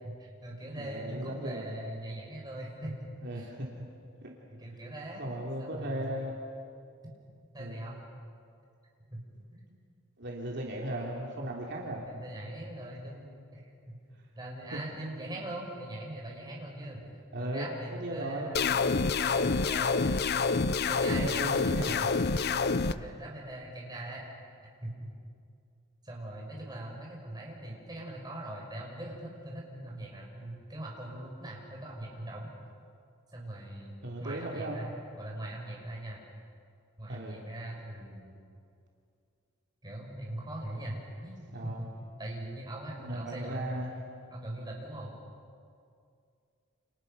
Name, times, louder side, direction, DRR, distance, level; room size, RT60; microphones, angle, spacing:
voice 1, 0.0-3.5 4.6-5.3 5.6-6.2 7.5-8.0 9.1-9.2 9.5-9.6 12.1-14.0 14.4-18.7 19.2-20.2 20.9-22.1 22.8-24.2 24.8-25.1 26.0-32.5 33.3-33.9 34.2-36.2 37.0-38.3 39.8-41.9 42.2-45.1, right 1 dB, 20° right, -2 dB, 6.2 m, -41 dB
voice 2, 0.7-1.7 3.2-3.9 4.2-4.3 5.1-6.4 7.6-7.8 10.2-12.0 14.7-14.8 15.3-15.4 17.3-18.5 21.1-22.0 34.0-34.8 37.1-37.4 41.5-41.8 43.0-43.9, right 1 dB, 55° right, -2 dB, 3.2 m, -37 dB
sound 1, 18.5-22.9, left 4 dB, 50° left, 0.7 m, -27 dB
30.0 x 28.5 x 6.9 m, 2.4 s
head